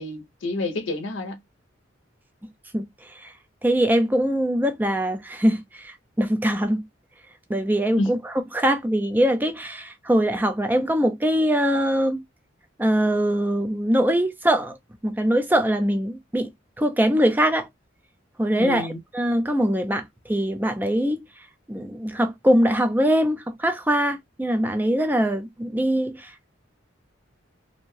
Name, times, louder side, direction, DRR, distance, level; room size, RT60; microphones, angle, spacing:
voice 1, 0.0-1.4 8.0-8.2 18.6-19.0, left 2 dB, 75° left, 0.6 m, -28 dB
voice 2, 2.7-3.3 3.6-6.9 7.5-12.2 12.8-14.8 15.0-16.5 16.8-17.7 18.4-18.9 19.1-21.2 21.7-26.5, equal, 10° right, 0.4 m, -22 dB
2.6 x 2.1 x 3.1 m
head